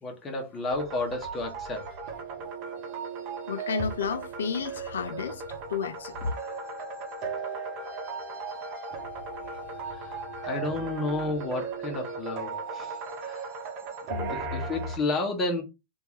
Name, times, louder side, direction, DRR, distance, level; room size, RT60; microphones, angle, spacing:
voice 1, 0.0-1.9 2.9-3.4 6.2-6.3 9.4-13.6 14.3-15.6, left 2 dB, 25° left, 1.1 m, -32 dB
sound 1, 0.7-15.0, right 4 dB, 45° right, 1.0 m, -37 dB
voice 2, 3.5-5.4 5.7-6.2 14.1-14.3, left 6 dB, 75° left, 0.5 m, -32 dB
Wind instrument woodwind instrument, 6.0-11.3, left 7 dB, 15° right, 1.4 m, -44 dB
3.4 x 2.6 x 3.1 m
hypercardioid pair, 100°, 0 cm